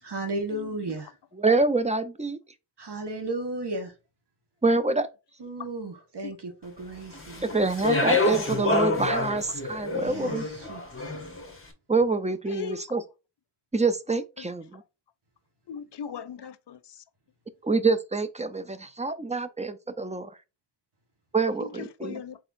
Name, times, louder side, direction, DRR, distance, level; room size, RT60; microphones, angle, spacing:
voice 1, 0.0-1.2 2.8-3.9 5.4-7.6 9.9-11.2, right 2 dB, 75° right, 1.6 m, -35 dB
voice 2, 1.4-2.4 4.6-5.1 7.4-10.5 11.9-13.0 13.7-14.8 17.6-20.3 21.3-22.2, right 3 dB, 15° right, 0.6 m, -26 dB
Speech, 7.1-11.5, left 2 dB, 30° left, 1.1 m, -27 dB
voice 3, 12.5-12.8 15.7-16.8 21.6-21.7 22.0-22.4, left 8 dB, 75° left, 0.6 m, -38 dB
4.3 x 4.1 x 2.6 m
wide cardioid pair, 70°, 41 cm